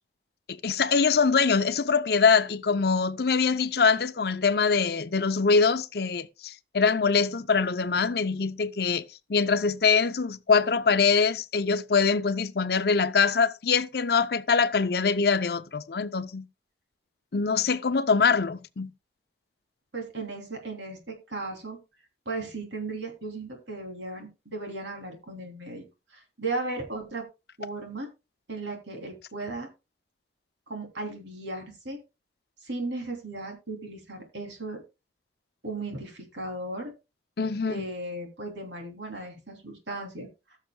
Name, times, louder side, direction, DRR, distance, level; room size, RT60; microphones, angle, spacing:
voice 1, 0.5-9.0 9.3-16.5 17.3-18.9 37.4-37.8, left 5 dB, 55° left, 0.6 m, -23 dB
voice 2, 19.9-21.8 22.2-25.8 26.1-27.2 27.6-28.1 28.5-29.7 30.7-32.0 32.6-34.8 35.6-36.9 37.7-40.3, right 2 dB, 80° right, 3.1 m, -36 dB
19.5 x 6.5 x 2.3 m
head